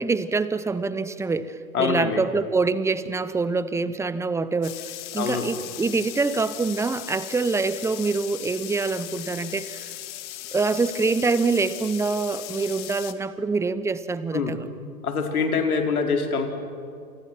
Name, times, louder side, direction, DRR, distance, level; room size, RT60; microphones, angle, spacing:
voice 1, 0.0-4.7 5.1-9.8 10.5-14.7, right 4 dB, 5° right, 15 dB, 0.8 m, -25 dB
voice 2, 1.7-2.2 5.2-5.5 14.3-14.5 15.0-16.5, left 5 dB, 75° left, 4 dB, 4.2 m, -24 dB
sound 1, 4.6-13.1, left 14 dB, 50° left, 1.8 m, -38 dB
29.5 x 28.0 x 6.0 m, 2.4 s
hypercardioid pair, 110°, 44 cm